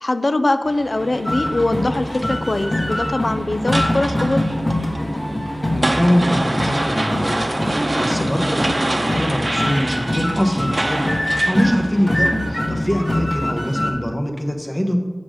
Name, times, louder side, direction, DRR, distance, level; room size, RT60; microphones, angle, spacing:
voice 1, 0.0-4.5, left 2 dB, 60° left, 10 dB, 0.5 m, -22 dB
sound 1, 0.6-12.6, right 1 dB, 50° right, 0.8 m, -27 dB
sound 2, 1.0-13.9, left 1 dB, 40° left, 1.8 m, -24 dB
voice 2, 5.7-7.5 7.7-15.0, equal, 15° left, 3 dB, 1.1 m, -23 dB
6.5 x 6.0 x 5.0 m, 1.4 s
wide cardioid pair, 40°, 0 cm